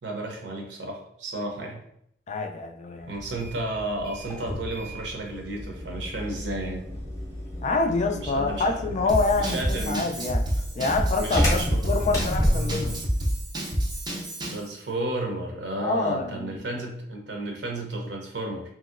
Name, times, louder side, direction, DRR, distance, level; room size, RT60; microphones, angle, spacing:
voice 1, 0.0-1.8 3.1-6.8 8.0-8.9 9.4-10.0 11.1-11.8 14.4-18.6, right 2 dB, 70° right, 1 dB, 0.7 m, -32 dB
voice 2, 2.3-3.2 7.6-10.4 10.8-13.0 15.8-16.6, left 3 dB, 40° left, 4 dB, 0.3 m, -26 dB
sound 1, 3.2-13.1, equal, 15° left, 0.7 m, -31 dB
Drum kit / Drum, 9.1-14.7, equal, 25° right, 0.5 m, -28 dB
2.9 x 2.7 x 2.5 m, 0.73 s
head